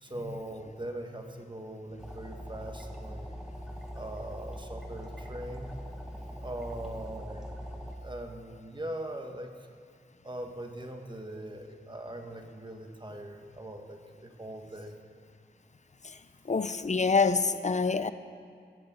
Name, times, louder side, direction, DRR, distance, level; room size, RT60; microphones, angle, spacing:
voice 1, 0.0-3.4 3.9-5.7 6.4-7.5 8.0-9.5 10.2-15.0, right 1 dB, 25° right, 4 dB, 1.3 m, -41 dB
sound 1, 2.0-8.0, equal, 5° right, 1.4 m, -42 dB
voice 2, 16.5-18.1, left 4 dB, 40° left, 12 dB, 0.5 m, -26 dB
15.0 x 6.7 x 8.3 m, 2.2 s
wide cardioid pair, 65°, 19 cm